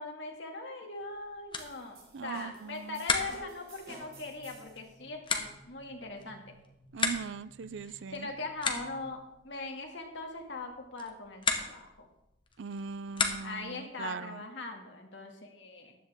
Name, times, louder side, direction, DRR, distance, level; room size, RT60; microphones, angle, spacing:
voice 1, 0.0-6.5 7.8-12.1 13.4-16.0, left 3 dB, 65° left, 2.0 m, -41 dB
sound 1, 1.0-13.8, left 4 dB, 25° left, 1.1 m, -38 dB
sound 2, 1.6-4.8, right 2 dB, 50° right, 4.6 m, -54 dB
voice 2, 2.1-3.1 6.9-8.3 12.6-14.5, right 5 dB, 70° right, 0.4 m, -40 dB
sound 3, 3.8-9.1, equal, 20° right, 4.9 m, -59 dB
14.5 x 10.0 x 3.6 m
head